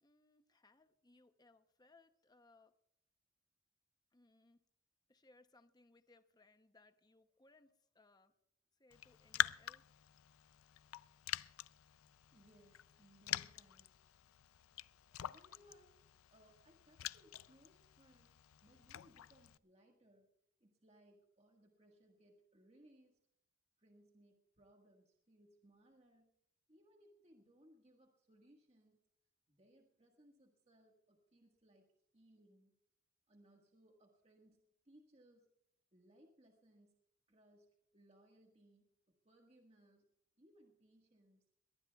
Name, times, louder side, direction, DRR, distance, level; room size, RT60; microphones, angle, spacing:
voice 1, 0.0-2.7 4.1-4.6 5.1-8.3 8.8-9.8, left 2 dB, 20° left, 10 dB, 0.7 m, -68 dB
Raindrop, 8.9-19.6, left 11 dB, 85° left, 0.4 m, -45 dB
voice 2, 12.3-13.9 14.9-16.0 16.3-20.3 20.6-23.2 23.8-26.3 26.7-29.0 29.5-31.9 32.1-32.7 33.3-34.6 34.8-35.5 35.9-37.0 37.3-40.0 40.4-41.4, right 1 dB, 30° right, 1 dB, 1.6 m, -67 dB
22.0 x 18.5 x 2.3 m, 0.76 s
head